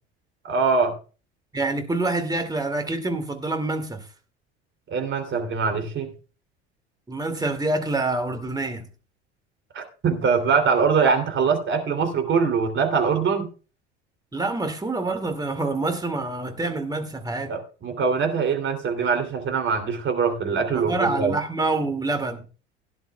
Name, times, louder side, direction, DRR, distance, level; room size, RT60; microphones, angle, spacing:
voice 1, 0.4-0.9 4.9-6.1 9.7-13.5 17.5-21.4, right 5 dB, 35° right, 3.0 m, -23 dB
voice 2, 1.5-4.0 7.1-8.8 14.3-17.6 20.7-22.4, right 2 dB, 10° right, 2.3 m, -26 dB
17.5 x 10.5 x 2.3 m
figure-of-eight pair, 70°, 33 cm